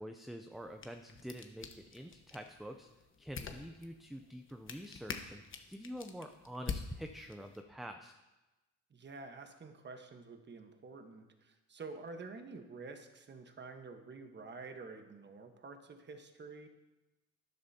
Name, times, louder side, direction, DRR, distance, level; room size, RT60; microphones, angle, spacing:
voice 1, 0.0-2.9 3.2-5.4 5.7-8.1, equal, ahead, 5 dB, 0.5 m, -46 dB
sound 1, 0.5-7.6, left 5 dB, 40° left, 1.1 m, -47 dB
voice 2, 8.9-16.7, right 4 dB, 35° right, 6 dB, 1.3 m, -49 dB
12.0 x 10.0 x 2.8 m, 1.1 s
cardioid pair, 90°, 30 cm